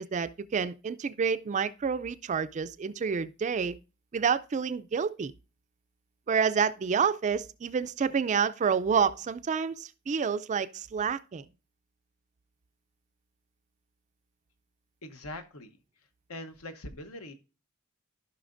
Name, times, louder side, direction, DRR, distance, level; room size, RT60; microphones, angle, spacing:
voice 1, 0.0-3.8 4.1-5.3 6.3-11.5, right 6 dB, 35° right, 0.3 m, -28 dB
voice 2, 15.0-15.8 16.3-17.3, left 1 dB, 75° left, 1.0 m, -42 dB
14.5 x 5.6 x 2.5 m
head